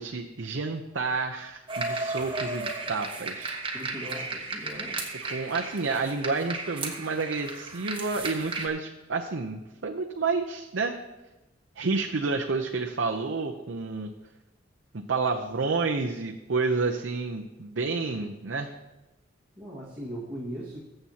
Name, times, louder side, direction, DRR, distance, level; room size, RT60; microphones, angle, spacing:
voice 1, 0.0-3.6 5.3-11.0 11.8-14.1 14.9-18.7, right 4 dB, 75° right, 2 dB, 0.7 m, -30 dB
sound 1, 1.7-8.7, right 3 dB, 25° right, 1.3 m, -34 dB
voice 2, 3.7-5.0 19.6-20.8, equal, 10° right, -9 dB, 1.7 m, -38 dB
21.0 x 7.8 x 2.9 m, 1.0 s
head